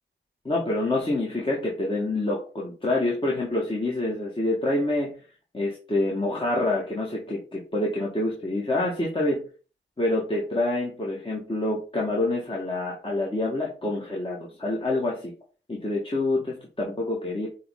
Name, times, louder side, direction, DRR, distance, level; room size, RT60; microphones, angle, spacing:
voice 1, 0.4-5.1 5.5-9.4 10.0-15.3 15.7-17.5, left 2 dB, 25° left, -3 dB, 1.6 m, -27 dB
8.3 x 3.2 x 3.7 m, 0.36 s
cardioid pair, 75°, 21 cm